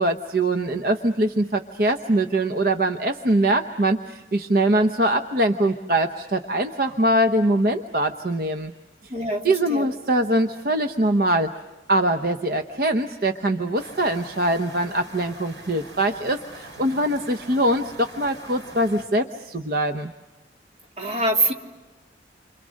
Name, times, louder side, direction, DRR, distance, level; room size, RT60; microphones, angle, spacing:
voice 1, 0.0-8.7 9.0-9.1 9.4-11.5 11.9-20.1, right 1 dB, 55° right, 7 dB, 0.9 m, -22 dB
voice 2, 9.1-9.9 21.0-21.5, right 2 dB, 35° right, 1 dB, 2.6 m, -24 dB
sound 1, 13.7-19.0, right 1 dB, 80° right, 6.4 m, -43 dB
29.5 x 26.0 x 6.4 m, 1.2 s
head